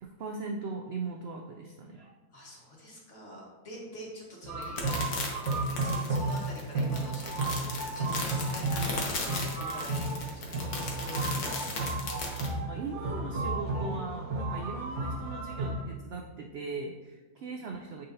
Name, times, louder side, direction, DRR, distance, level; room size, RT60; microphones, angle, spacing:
voice 1, 0.0-2.1 12.6-18.1, right 4 dB, 70° right, 2 dB, 0.6 m, -39 dB
voice 2, 2.3-5.0 5.6-11.8 17.4-17.5, equal, 50° left, -3 dB, 1.7 m, -46 dB
sound 1, 4.4-15.8, right 2 dB, 50° right, 1.5 m, -33 dB
sound 2, 4.6-12.5, left 3 dB, 80° left, 1.5 m, -36 dB
9.3 x 3.9 x 2.7 m, 1.2 s
omnidirectional pair, 1.6 m